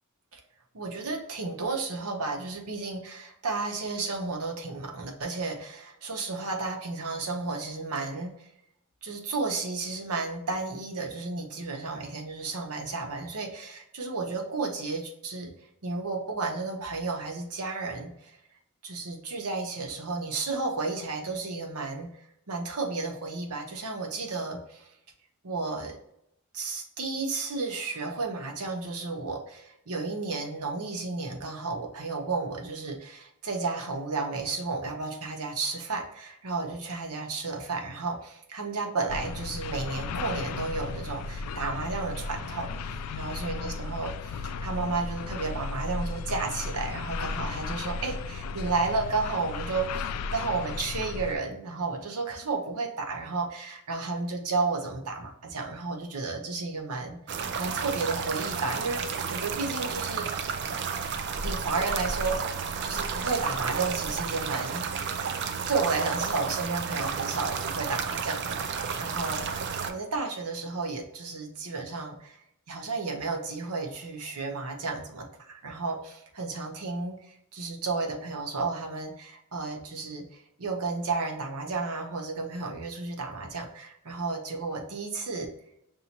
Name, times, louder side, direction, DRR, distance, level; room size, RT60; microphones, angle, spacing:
voice 1, 0.7-8.5 9.0-15.5 15.8-18.4 18.8-22.1 22.5-24.9 25.4-26.0 26.5-44.1 44.6-57.2 57.6-60.3 61.4-64.8 65.7-69.4 69.9-72.4 72.7-85.5, right 3 dB, 85° right, 3 dB, 0.9 m, -32 dB
sound 1, 39.1-51.3, left 4 dB, 90° left, 0.3 m, -35 dB
sound 2, 57.3-69.9, right 6 dB, 50° right, 0.4 m, -32 dB
5.6 x 2.7 x 2.9 m, 0.76 s
head